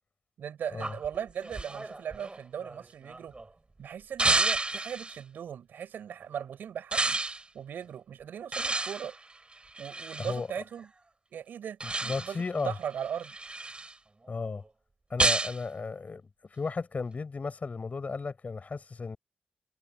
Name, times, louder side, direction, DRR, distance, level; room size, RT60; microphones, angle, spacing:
voice 1, 0.4-3.3 3.8-7.2 7.5-9.1 9.8-10.9 11.3-13.3, right 8 dB, 90° right, 6.6 m, -38 dB
sound 1, 0.8-3.4 4.2-5.2 6.9-7.4 8.5-10.4 11.8-12.5 13.0-13.9 15.2-15.6, right 2 dB, 35° right, 6.2 m, -30 dB
voice 2, 10.2-10.6 11.8-12.7 14.3-14.6 15.1-16.2 16.5-19.2, left 4 dB, 50° left, 4.7 m, -34 dB
cardioid pair, 50°, 3 cm